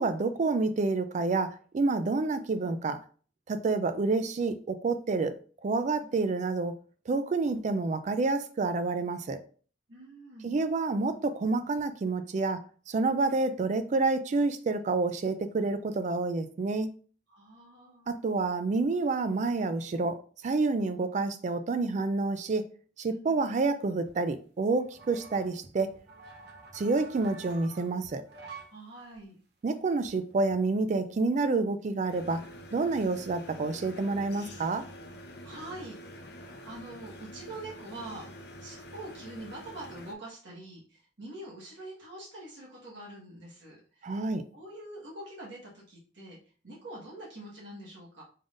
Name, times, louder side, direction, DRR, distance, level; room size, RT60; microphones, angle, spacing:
voice 1, 0.0-3.0 3.5-5.3 5.6-6.7 7.1-9.4 10.4-12.6 12.9-16.9 18.1-20.2 20.4-22.6 23.0-25.9 26.7-28.2 29.6-32.4 32.7-34.8 44.0-44.4, right 3 dB, 40° right, 0.3 m, -28 dB
voice 2, 9.9-10.5 17.3-18.1 23.1-23.4 28.6-29.4 35.4-38.3 38.6-44.2 44.5-46.4 46.6-48.2, right 1 dB, 75° right, 1.5 m, -45 dB
sound 1, 24.0-28.7 29.1-29.2 29.7-31.1 31.5-31.6 32.1-32.2 32.4-33.9 34.4-34.5 34.7-35.3 35.9-36.0 36.7-36.8 37.1-38.2 38.5-38.9 39.2-39.6, right 4 dB, 60° right, 0.8 m, -50 dB
sound 2, 32.1-40.1, equal, 60° left, 0.6 m, -47 dB
3.7 x 3.6 x 2.5 m
head